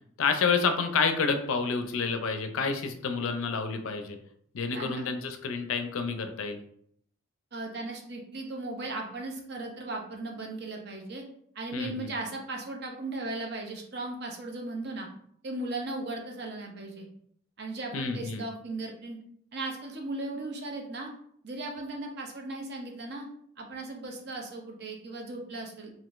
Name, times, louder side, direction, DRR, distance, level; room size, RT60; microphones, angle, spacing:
voice 1, 0.2-4.2 4.5-6.6 11.7-12.1 17.9-18.4, left 5 dB, 75° left, 7 dB, 0.4 m, -29 dB
voice 2, 4.7-5.0 7.5-11.2 11.5-15.1 15.4-17.1 17.6-19.2 19.5-21.1 21.4-23.2 23.6-25.9, right 2 dB, 50° right, 1 dB, 0.6 m, -37 dB
3.6 x 2.5 x 2.4 m, 0.66 s
head